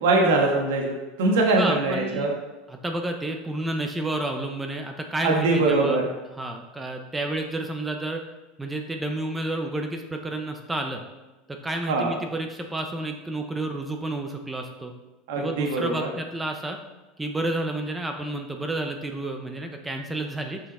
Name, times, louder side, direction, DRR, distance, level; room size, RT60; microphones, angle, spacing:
voice 1, 0.0-2.3 5.2-6.1 11.9-12.1 15.3-16.1, right 2 dB, 85° right, 0 dB, 1.3 m, -22 dB
voice 2, 1.5-2.3 2.7-6.0 6.4-8.2 8.6-11.0 11.5-14.9 15.4-16.8 17.2-20.6, right 2 dB, 10° right, 4 dB, 0.6 m, -30 dB
6.1 x 5.7 x 4.2 m, 1.1 s
supercardioid pair, 140°, 0 cm